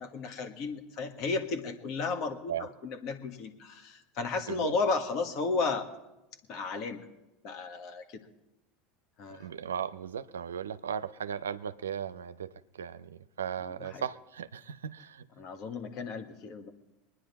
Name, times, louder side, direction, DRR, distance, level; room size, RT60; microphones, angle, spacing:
voice 1, 0.0-5.9 6.5-7.0 7.4-8.2 9.2-9.5 13.8-14.0 15.4-16.7, left 4 dB, 50° left, 5 dB, 1.6 m, -34 dB
voice 2, 4.5-4.8 9.3-15.3, right 8 dB, 80° right, 14 dB, 0.5 m, -37 dB
23.5 x 9.9 x 4.1 m, 0.97 s
hypercardioid pair, 80°, 0 cm